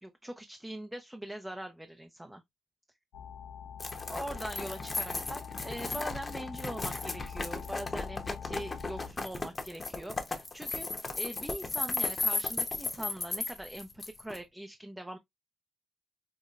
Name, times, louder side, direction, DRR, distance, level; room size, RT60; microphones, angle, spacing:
voice 1, 0.0-2.4 4.1-15.2, right 1 dB, 10° right, 0.5 m, -42 dB
sound 1, 3.1-9.1, left 8 dB, 85° left, 0.8 m, -44 dB
sound 2, 3.8-14.4, left 3 dB, 30° left, 0.8 m, -35 dB
5.5 x 2.1 x 2.4 m
cardioid pair, 105°, 0 cm